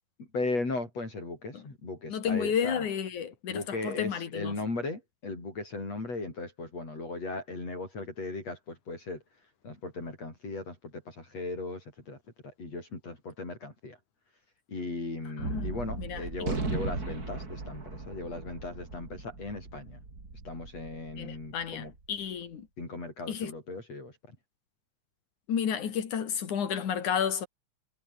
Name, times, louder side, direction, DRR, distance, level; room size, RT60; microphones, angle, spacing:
voice 1, 0.2-2.9 3.5-9.2 9.6-14.0 14.7-20.0 20.5-21.9 22.8-24.2, left 3 dB, 60° left, 8.8 m, -37 dB
voice 2, 2.1-4.5 15.4-15.7 16.0-16.2 21.2-22.7 23.3-23.5 25.5-27.5, left 8 dB, 90° left, 4.0 m, -31 dB
Gunshot gunfire, 15.4-22.0, right 3 dB, 30° right, 4.4 m, -37 dB
omnidirectional pair, 3.4 m